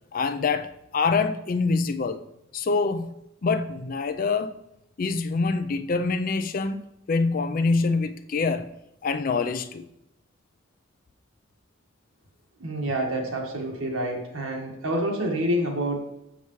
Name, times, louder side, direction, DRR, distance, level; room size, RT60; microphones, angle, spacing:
voice 1, 0.1-2.2 2.5-3.1 3.4-4.5 5.0-6.8 7.1-8.7 9.0-9.8, left 4 dB, 45° left, 10 dB, 0.4 m, -25 dB
voice 2, 12.6-16.0, right 1 dB, 90° right, 0 dB, 1.6 m, -27 dB
7.0 x 6.9 x 3.1 m, 0.82 s
head